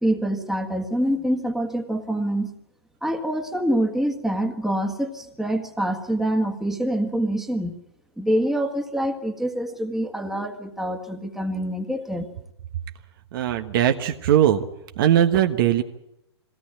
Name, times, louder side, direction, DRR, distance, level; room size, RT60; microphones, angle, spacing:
voice 1, 0.0-2.5 3.0-7.8 8.2-12.3, right 1 dB, ahead, 4 dB, 1.7 m, -25 dB
voice 2, 13.3-14.7 15.0-15.8, right 10 dB, 50° right, 7 dB, 1.3 m, -19 dB
21.5 x 17.0 x 8.8 m, 0.86 s
hypercardioid pair, 135°, 14 cm